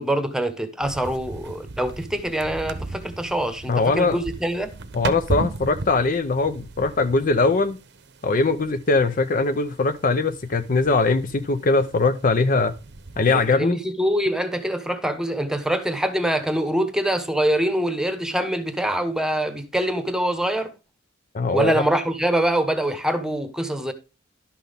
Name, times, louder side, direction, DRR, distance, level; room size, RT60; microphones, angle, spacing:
voice 1, 0.0-4.7 13.5-20.7 21.5-23.9, right 1 dB, 5° right, 1.0 m, -24 dB
sound 1, 0.8-13.6, right 2 dB, 60° right, 0.8 m, -36 dB
voice 2, 3.7-4.2 4.9-7.8 8.2-12.7 13.2-13.8 21.3-21.7, left 3 dB, 40° left, 0.6 m, -21 dB
11.5 x 6.0 x 3.5 m
head